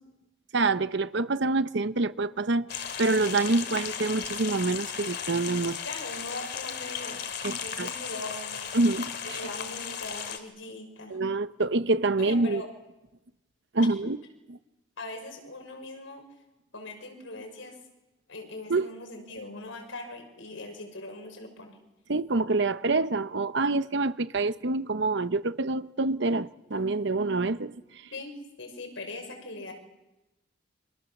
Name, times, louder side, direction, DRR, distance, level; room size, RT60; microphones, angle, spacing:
voice 1, 0.5-5.8 7.4-7.9 8.7-9.1 11.1-12.6 13.7-14.2 18.7-18.9 22.1-27.8, right 3 dB, 60° right, 0.9 m, -26 dB
sound 1, 2.7-10.4, left 7 dB, 55° left, 2.7 m, -36 dB
voice 2, 5.8-8.7 9.2-11.2 12.2-12.7 14.0-14.1 15.0-16.3 16.7-17.8 18.3-21.8 28.1-29.7, left 2 dB, 85° left, 6.3 m, -41 dB
30.0 x 26.0 x 7.3 m
head